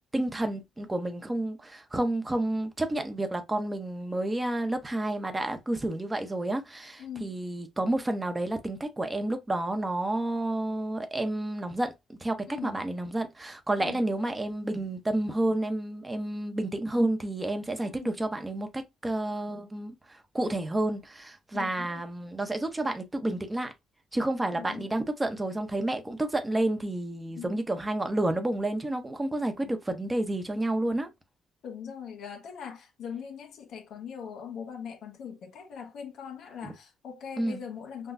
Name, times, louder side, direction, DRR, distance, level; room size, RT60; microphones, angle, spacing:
voice 1, 0.1-23.7 24.1-31.1 36.6-36.7 37.4-37.6, right 1 dB, 20° right, 1.0 m, -30 dB
voice 2, 7.0-7.3 12.5-12.8 13.8-14.0 17.8-18.2 21.5-22.0 24.5-25.0 27.4-27.6 29.6-29.7 31.6-38.1, left 7 dB, 75° left, 1.4 m, -41 dB
6.0 x 2.3 x 2.7 m
cardioid pair, 90°, 0 cm